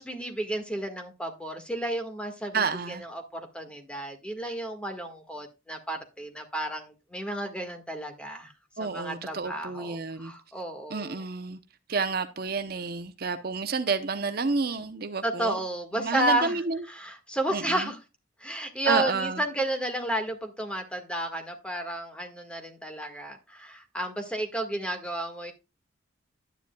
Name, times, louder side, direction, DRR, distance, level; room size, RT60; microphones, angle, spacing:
voice 1, 0.0-11.2 15.2-16.6 17.0-18.0 18.4-25.5, right 1 dB, 5° left, 1.6 m, -32 dB
voice 2, 2.5-3.1 8.8-10.3 10.9-11.6 11.9-15.6 15.9-16.8 17.5-17.9 18.9-19.4, right 4 dB, 50° right, 0.7 m, -30 dB
11.0 x 10.0 x 2.3 m
head